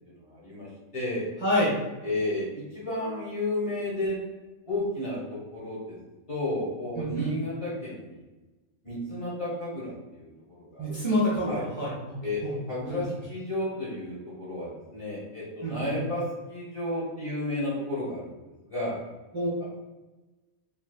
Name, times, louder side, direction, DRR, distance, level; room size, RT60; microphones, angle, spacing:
voice 1, 0.1-0.7 0.9-1.3 2.0-4.2 4.7-6.0 6.3-8.2 8.8-10.3 10.6-11.0 11.5-11.7 12.2-12.4 12.7-18.3 18.6-19.0, left 1 dB, 25° left, -8 dB, 1.4 m, -32 dB
voice 2, 1.4-1.7 7.0-7.3 10.8-12.1 12.4-12.5 12.9-13.0 15.6-16.0 19.3-19.5, equal, 20° right, -8 dB, 1.1 m, -27 dB
4.3 x 3.5 x 2.3 m, 1.1 s
omnidirectional pair, 1.5 m